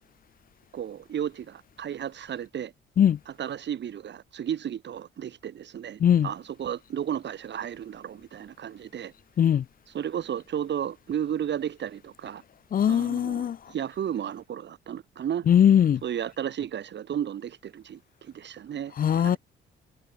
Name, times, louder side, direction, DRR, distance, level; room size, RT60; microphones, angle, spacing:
voice 1, 0.7-2.7 3.3-9.1 9.9-12.4 12.9-15.5 16.0-19.4, right 9 dB, 60° right, 8.0 m, -33 dB
voice 2, 6.0-6.3 9.4-9.6 12.7-13.6 15.5-16.0 19.0-19.4, left 9 dB, 45° left, 0.6 m, -20 dB
cardioid pair, 90°, 20 cm